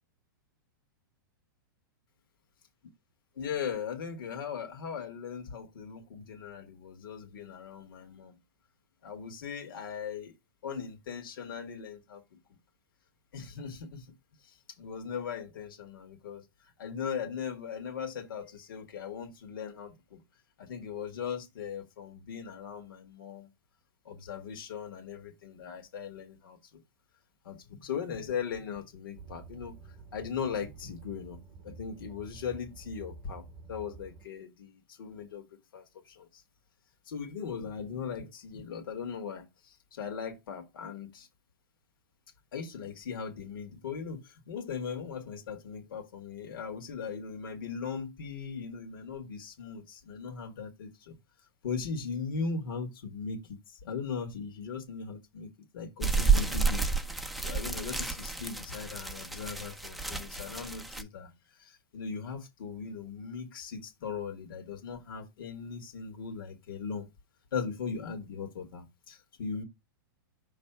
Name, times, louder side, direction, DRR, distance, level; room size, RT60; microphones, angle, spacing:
voice 1, 3.3-8.4 9.0-10.3 10.6-12.2 13.3-14.1 14.4-16.4 16.8-20.2 20.6-23.5 24.0-26.8 27.4-29.7 30.1-31.4 31.6-33.4 33.7-35.5 35.7-36.4 37.1-41.3 42.5-51.1 51.6-55.5 55.7-56.8 57.1-67.1 67.5-69.6, left 6 dB, 70° left, 1.7 m, -39 dB
sound 1, 29.1-34.3, right 4 dB, 25° right, 0.9 m, -50 dB
sound 2, 56.0-61.0, right 5 dB, ahead, 0.5 m, -30 dB
5.7 x 3.3 x 5.6 m
hypercardioid pair, 150°, 12 cm